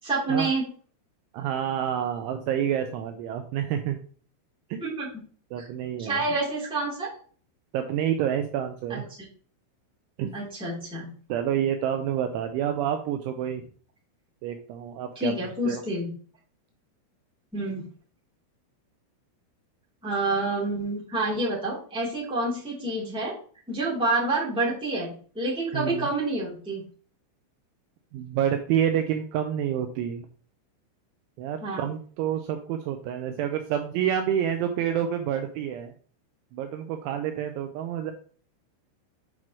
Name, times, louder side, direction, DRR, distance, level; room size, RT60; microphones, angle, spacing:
voice 1, 0.0-0.6 4.8-5.1 5.6-5.7 6.0-7.1 8.9-9.0 10.3-11.1 15.1-16.1 17.5-17.9 20.0-23.3 23.7-26.8 31.6-31.9, right 2 dB, ahead, -6 dB, 2.2 m, -28 dB
voice 2, 1.3-4.0 4.7-4.8 5.5-6.2 7.7-9.0 10.2-10.3 11.3-13.6 14.4-15.3 15.7-15.8 25.7-26.1 28.1-30.3 31.4-35.9 36.5-38.1, right 9 dB, 80° right, 6 dB, 2.8 m, -28 dB
9.0 x 5.7 x 3.2 m, 0.43 s
omnidirectional pair, 5.9 m